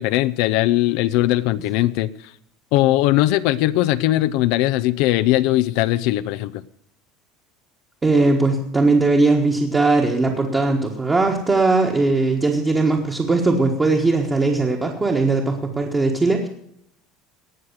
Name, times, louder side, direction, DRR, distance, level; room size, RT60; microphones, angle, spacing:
voice 1, 0.0-2.1 2.7-6.6, left 15 dB, 65° left, 13 dB, 0.6 m, -19 dB
voice 2, 8.0-16.5, right 3 dB, 15° right, 0 dB, 1.4 m, -19 dB
18.5 x 6.4 x 8.1 m, 0.72 s
cardioid pair, 160°, 0 cm